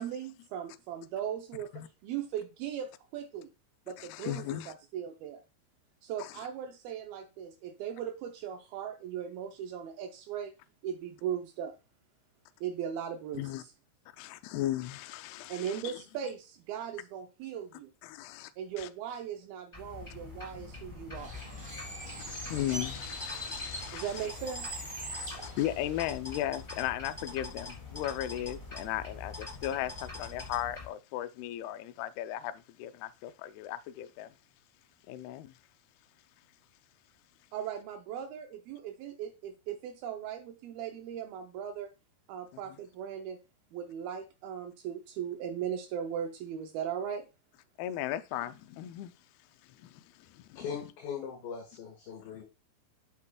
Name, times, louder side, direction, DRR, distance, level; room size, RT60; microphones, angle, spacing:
voice 1, 0.0-3.5 3.9-5.4 6.0-10.5 10.8-11.8 12.6-13.7 15.5-17.9 18.6-21.3 23.9-24.8 37.5-41.9 42.3-43.4 43.7-47.3, right 9 dB, 90° right, 2.1 m, -38 dB
voice 2, 4.0-4.7 6.2-6.3 13.3-13.6 14.2-16.0 18.0-18.5 18.8-18.9 22.3-24.1 25.1-34.3 35.1-35.5 42.5-42.6 47.8-49.1 49.7-50.7, left 13 dB, 85° left, 2.3 m, -36 dB
sound 1, 19.7-30.9, left 3 dB, 10° left, 2.4 m, -44 dB
Bird, 21.1-26.1, right 1 dB, 15° right, 1.3 m, -42 dB
voice 3, 50.6-52.4, left 7 dB, 60° left, 3.0 m, -40 dB
8.3 x 8.3 x 2.3 m
omnidirectional pair, 5.2 m